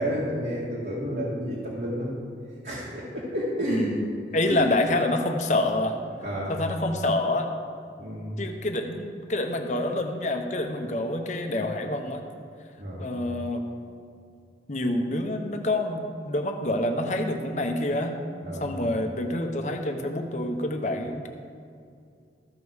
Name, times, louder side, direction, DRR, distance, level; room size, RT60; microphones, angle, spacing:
voice 1, 0.0-2.2 2.6-4.0 4.5-4.6 6.2-6.6 8.0-8.4 12.8-13.1 18.4-18.7, equal, 55° right, -8 dB, 2.0 m, -30 dB
voice 2, 3.7-6.0 6.5-7.5 8.4-12.2 13.0-13.7 14.7-18.1 18.6-21.3, left 1 dB, 40° left, 4 dB, 0.9 m, -27 dB
14.0 x 5.3 x 6.3 m, 2.4 s
head